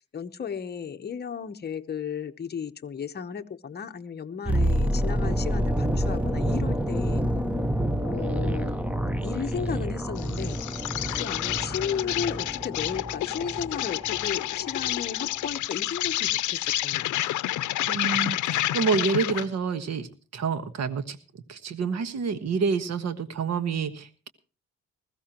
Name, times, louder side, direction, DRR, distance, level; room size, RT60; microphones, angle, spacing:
voice 1, 0.0-7.2 8.0-8.7 9.2-10.6 11.1-17.4, left 7 dB, 35° left, 7 dB, 0.9 m, -34 dB
sound 1, 4.5-14.4 14.7-14.9, equal, 5° right, 0.8 m, -28 dB
Insect, 10.2-19.5, left 14 dB, 80° left, 0.6 m, -29 dB
voice 2, 17.9-24.3, right 5 dB, 60° right, 10 dB, 1.4 m, -28 dB
20.5 x 15.0 x 3.0 m, 0.37 s
cardioid pair, 115°, 29 cm